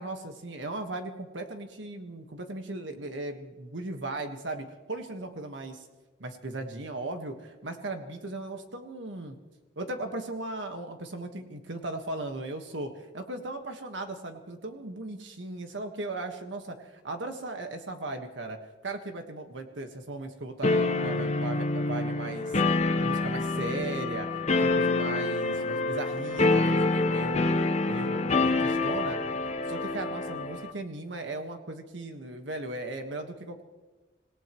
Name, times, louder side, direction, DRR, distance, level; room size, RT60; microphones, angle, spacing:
voice 1, 0.0-5.8 6.2-9.4 9.8-16.8 17.0-18.6 18.8-22.5 23.0-27.5 27.8-29.2 29.7-33.6, right 2 dB, 80° right, 5 dB, 1.5 m, -37 dB
sound 1, 20.6-30.7, left 3 dB, 40° left, 0.8 m, -27 dB
26.5 x 17.5 x 3.1 m, 1.2 s
head